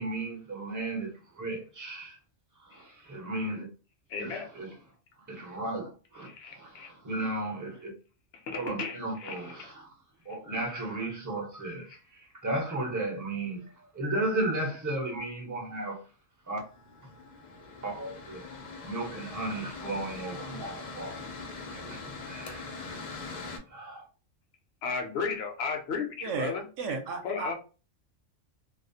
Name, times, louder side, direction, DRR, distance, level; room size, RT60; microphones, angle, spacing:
voice 1, 0.0-2.2 2.6-3.7 4.2-4.8 5.3-7.9 8.5-9.9 10.2-16.0 16.5-16.6 17.8-18.4 18.8-22.0 22.3-23.0 23.7-24.0, right 2 dB, 20° right, 0.5 m, -35 dB
voice 2, 4.1-4.5 6.2-6.9 8.5-9.7 24.8-26.6 27.2-27.5, left 5 dB, 65° left, 0.7 m, -34 dB
Mechanical fan, 16.6-23.6, left 3 dB, 80° left, 0.4 m, -42 dB
voice 3, 26.2-27.5, right 4 dB, 75° right, 0.9 m, -34 dB
2.4 x 2.0 x 2.6 m
omnidirectional pair, 1.3 m